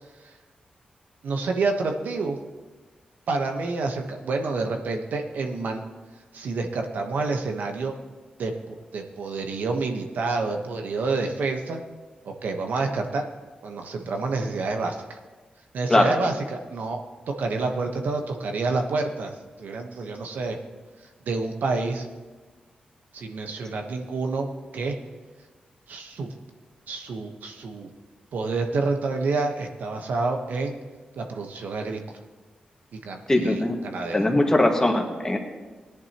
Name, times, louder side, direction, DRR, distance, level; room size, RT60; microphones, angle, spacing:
voice 1, 1.2-2.4 3.3-5.8 6.3-8.0 8.4-11.8 12.2-13.2 13.6-15.2 15.7-17.0 17.3-20.6 21.2-22.1 23.1-24.5 24.7-24.9 25.9-26.3 26.9-27.9 28.3-30.8 31.2-32.0 32.9-34.2, right 3 dB, 85° right, 4 dB, 1.1 m, -28 dB
voice 2, 33.3-33.8 34.1-35.4, left 1 dB, 20° left, 2 dB, 1.7 m, -20 dB
17.5 x 10.5 x 3.0 m, 1.3 s
cardioid pair, 75°, 3 cm